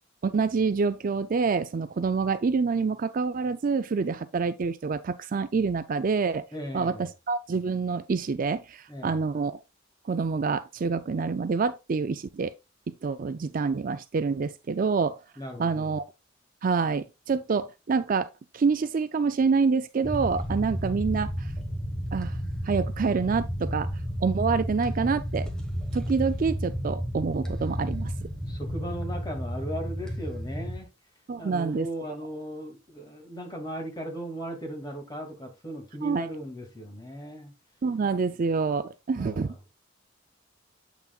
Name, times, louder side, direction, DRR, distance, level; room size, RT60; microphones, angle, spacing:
voice 1, 0.2-6.4 6.7-9.6 10.1-12.5 12.9-15.2 15.6-16.0 16.6-18.3 18.5-21.5 22.1-22.4 22.6-23.9 24.2-25.5 25.9-28.3 31.3-31.9 36.0-36.2 37.8-39.7, right 4 dB, 45° right, 0.4 m, -27 dB
voice 2, 6.5-7.1 8.9-9.3 15.4-16.0 28.5-30.9 31.4-37.5 39.2-39.6, equal, 20° left, 2.3 m, -37 dB
sound 1, 20.0-30.8, equal, 5° left, 1.3 m, -32 dB
8.2 x 5.9 x 2.4 m
head